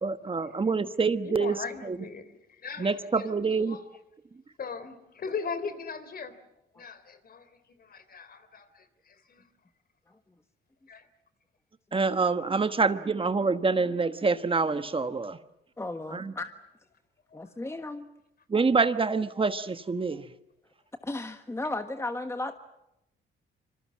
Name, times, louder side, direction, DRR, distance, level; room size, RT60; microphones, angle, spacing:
voice 1, 0.0-1.6 1.8-2.0 2.8-3.8 11.9-15.4 16.1-16.3 18.5-20.2, right 4 dB, 25° right, 10 dB, 1.2 m, -26 dB
voice 2, 1.2-2.2 2.5-3.1 3.7-3.8 4.6-6.4 6.7-7.5 7.8-9.4 10.9-11.0 17.3-17.5, left 5 dB, 50° left, 12 dB, 3.5 m, -39 dB
voice 3, 15.8-16.5 17.3-18.1 21.0-22.5, left 2 dB, 15° left, 8 dB, 1.5 m, -34 dB
26.5 x 25.5 x 7.5 m, 0.86 s
cardioid pair, 90°, 20 cm